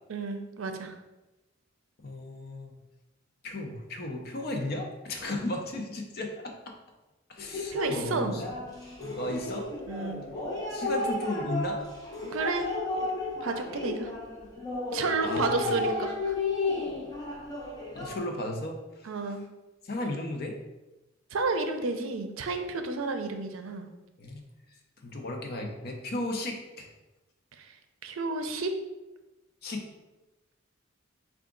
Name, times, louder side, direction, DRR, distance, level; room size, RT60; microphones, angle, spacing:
voice 1, 0.1-1.0 7.7-8.4 9.9-10.2 12.2-13.1 13.4-14.1 14.9-16.4 19.0-19.4 21.3-23.9 27.6-27.7 28.0-28.7, right 3 dB, 85° right, 7 dB, 0.5 m, -31 dB
voice 2, 2.0-2.8 3.4-6.5 7.3-8.4 9.1-9.7 10.7-11.8 15.2-15.7 17.9-19.1 19.8-20.6 24.2-24.4 25.0-26.9 29.6-29.8, left 1 dB, 50° left, 2 dB, 0.6 m, -34 dB
sound 1, 7.4-18.2, left 3 dB, 20° left, 0.8 m, -33 dB
4.7 x 2.4 x 3.7 m, 1.0 s
head